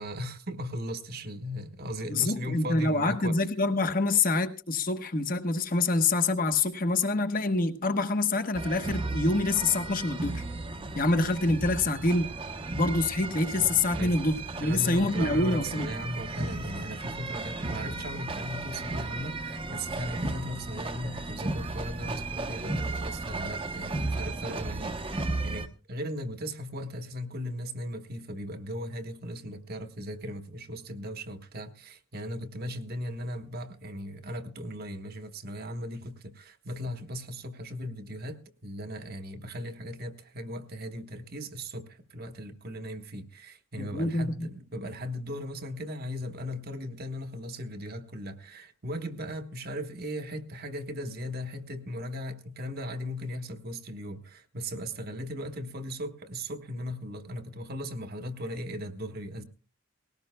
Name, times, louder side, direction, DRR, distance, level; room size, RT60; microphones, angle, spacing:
voice 1, 0.0-3.4 13.9-14.1 14.6-59.4, equal, 45° right, 1.2 m, -37 dB
voice 2, 2.1-10.4 10.9-12.3 12.7-15.9 43.8-44.5, left 3 dB, 40° left, 1.1 m, -26 dB
sound 1, 8.5-25.7, right 2 dB, 25° right, 0.9 m, -35 dB
19.5 x 17.5 x 2.2 m
head